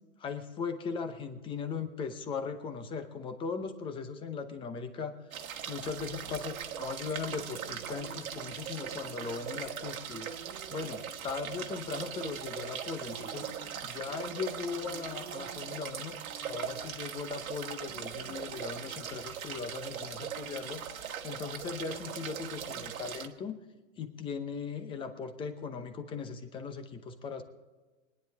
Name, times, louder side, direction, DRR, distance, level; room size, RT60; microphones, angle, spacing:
voice 1, 0.2-5.2 5.7-10.3 10.7-13.5 13.8-16.2 16.4-20.8 21.2-23.6 24.0-27.4, left 5 dB, 10° left, 8 dB, 0.8 m, -38 dB
sound 1, 5.3-23.3, right 8 dB, 80° right, 1.6 m, -40 dB
23.5 x 10.0 x 3.5 m, 1.3 s
hypercardioid pair, 150°, 41 cm